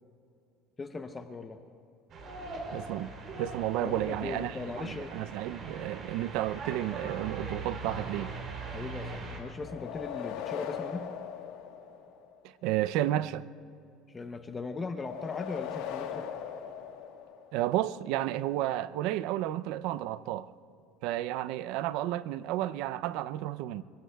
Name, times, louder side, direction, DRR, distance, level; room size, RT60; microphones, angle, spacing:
voice 1, 0.8-1.6 3.8-5.1 8.7-11.1 14.1-16.2, left 4 dB, 20° left, 0.7 m, -39 dB
sound 1, 2.1-9.4, right 3 dB, 40° right, 3.3 m, -41 dB
voice 2, 2.7-3.1 3.4-8.3 12.6-13.5 17.5-20.5 21.0-23.8, right 13 dB, 70° right, 0.4 m, -32 dB
sound 2, 9.6-12.4 15.0-17.7, left 9 dB, 85° left, 1.2 m, -39 dB
26.0 x 23.5 x 2.3 m
cardioid pair, 145°, 0 cm